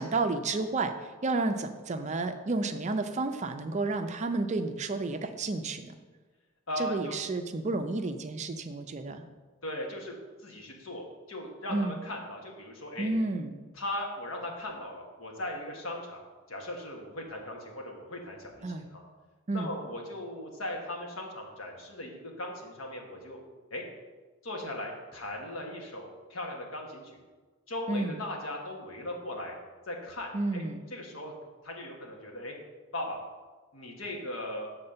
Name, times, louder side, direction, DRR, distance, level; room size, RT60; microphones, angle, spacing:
voice 1, 0.0-5.9 6.8-9.2 11.7-12.0 13.0-13.5 18.6-18.8 19.5-19.7 27.9-28.2 30.3-30.8, right 3 dB, 35° right, 7 dB, 0.4 m, -31 dB
voice 2, 6.7-7.2 9.6-10.1 10.4-11.0 11.3-13.1 13.7-19.0 19.5-23.4 23.7-23.8 24.4-27.1 27.7-29.6 29.9-30.6 30.9-31.3 31.6-32.6 32.9-33.2 33.7-34.7, left 1 dB, 70° left, 0 dB, 1.5 m, -38 dB
7.2 x 4.3 x 6.6 m, 1.3 s
head